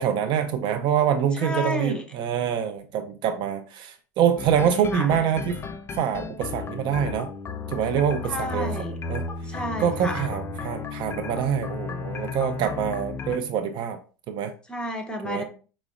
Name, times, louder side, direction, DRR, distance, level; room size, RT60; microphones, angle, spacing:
voice 1, 0.0-5.6 5.9-7.3 7.7-8.7 9.1-9.2 9.8-14.0 14.3-14.5 15.2-15.4, right 8 dB, 50° right, 0.4 m, -25 dB
voice 2, 1.3-2.0 4.7-5.1 8.3-9.0 9.4-10.3 14.7-15.4, equal, 10° left, 0.8 m, -31 dB
sound 1, 4.4-13.4, left 4 dB, 25° left, 0.4 m, -34 dB
4.8 x 2.0 x 2.3 m
hypercardioid pair, 95°, 10 cm